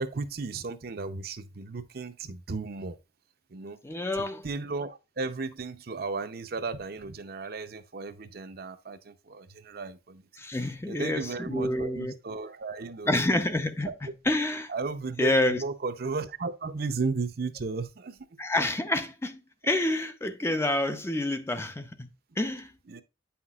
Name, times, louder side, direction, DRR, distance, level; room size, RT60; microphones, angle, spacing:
voice 1, 0.0-3.0 3.5-3.8 4.2-10.3 10.9-13.3 13.9-14.0 14.7-18.3 22.9-23.0, right 4 dB, 55° right, 0.6 m, -35 dB
voice 2, 3.8-4.5 10.4-12.2 13.1-13.9 14.3-14.7 15.2-15.6 18.4-22.1 22.4-22.7, left 1 dB, 15° left, 0.5 m, -28 dB
8.5 x 5.7 x 2.3 m
head